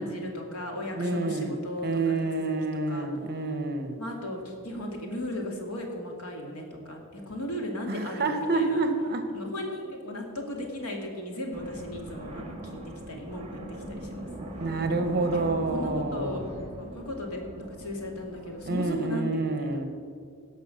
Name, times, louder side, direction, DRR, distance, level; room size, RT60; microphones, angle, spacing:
voice 1, 0.0-2.5 2.9-3.1 4.0-8.8 9.3-12.8 13.1-14.3 15.3-16.5 16.8-19.8, left 1 dB, 75° left, 1 dB, 2.3 m, -36 dB
voice 2, 0.9-1.5 1.8-4.0 7.9-9.2 14.6-16.4 18.6-19.8, right 3 dB, 45° right, 8 dB, 1.1 m, -28 dB
sound 1, 11.5-18.9, right 1 dB, 30° right, 1.7 m, -40 dB
17.0 x 6.0 x 6.4 m, 2.3 s
head